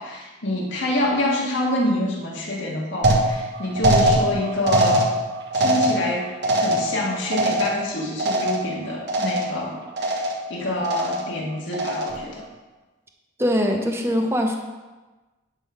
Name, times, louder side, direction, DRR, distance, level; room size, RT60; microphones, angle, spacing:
voice 1, 0.0-5.1 5.5-12.4, left 1 dB, 70° left, -2 dB, 1.8 m, -27 dB
sound 1, 3.0-8.8 9.1-9.6 10.0-10.5 10.8-11.4 11.7-12.3, right 1 dB, 55° right, 1.1 m, -22 dB
voice 2, 13.4-14.6, equal, 15° right, 3 dB, 0.7 m, -22 dB
10.5 x 3.8 x 5.7 m, 1.2 s
head